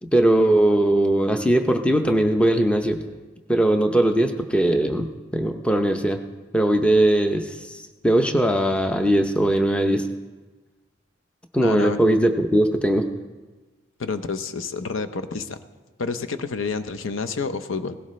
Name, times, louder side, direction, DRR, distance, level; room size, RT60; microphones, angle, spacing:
voice 1, 0.0-3.1 3.5-6.2 6.5-7.8 8.0-10.1 11.5-13.1, right 1 dB, 5° left, 6 dB, 0.6 m, -20 dB
voice 2, 11.6-12.0 14.0-15.6 16.0-18.0, left 4 dB, 85° left, 8 dB, 0.7 m, -29 dB
17.5 x 15.5 x 3.2 m, 1.3 s
head